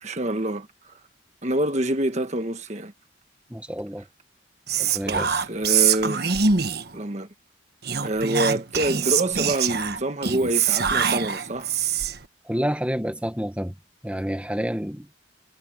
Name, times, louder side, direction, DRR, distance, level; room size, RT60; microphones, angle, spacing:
voice 1, 0.0-0.7 1.4-2.9 5.1-6.2 6.9-7.3 8.0-11.7, right 1 dB, 35° right, 1.4 m, -26 dB
voice 2, 3.5-4.0 4.8-5.3 12.4-13.7 14.0-15.1, equal, 5° right, 1.3 m, -29 dB
Whispering, 4.7-7.0 7.8-12.3, right 7 dB, 55° right, 1.3 m, -24 dB
head